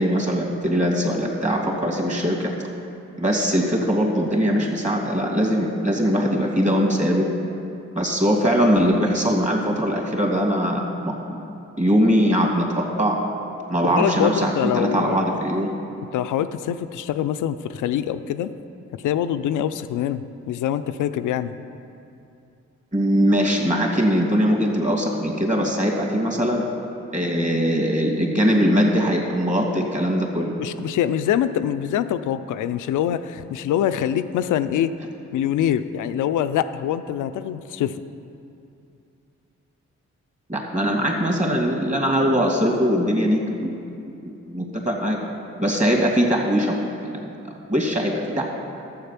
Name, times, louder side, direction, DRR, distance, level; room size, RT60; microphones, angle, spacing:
voice 1, 0.0-2.5 3.2-7.2 7.9-11.4 11.8-13.2 13.7-15.7 22.9-26.7 27.1-30.5 40.5-43.7 44.5-45.2 45.6-47.3 47.7-48.5, equal, 25° right, 0 dB, 2.6 m, -21 dB
voice 2, 13.8-15.3 16.1-18.5 19.0-21.5 30.6-34.9 35.3-38.0, left 10 dB, 80° left, 11 dB, 0.5 m, -24 dB
11.5 x 7.8 x 5.9 m, 2.6 s
supercardioid pair, 45°, 30 cm